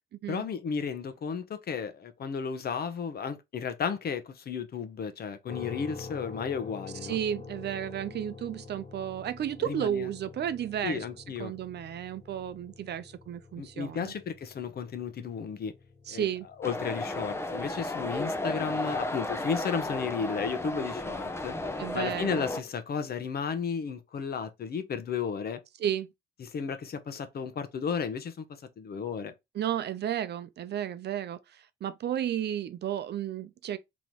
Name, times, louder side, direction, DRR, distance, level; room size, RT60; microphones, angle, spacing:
voice 1, 0.3-7.2 9.7-10.1 10.8-11.5 13.6-15.7 16.1-16.3 16.6-21.5 21.9-25.6 26.4-29.3, left 6 dB, 50° left, 0.8 m, -33 dB
sound 1, 5.5-19.5, left 4 dB, 35° left, 1.5 m, -47 dB
voice 2, 7.0-11.0 11.4-14.1 16.1-16.5 21.8-22.4 25.8-26.1 29.5-33.8, right 10 dB, 55° right, 0.6 m, -33 dB
sound 2, 16.6-22.6, left 2 dB, 15° left, 0.6 m, -33 dB
3.8 x 3.1 x 3.0 m
cardioid pair, 90°, 20 cm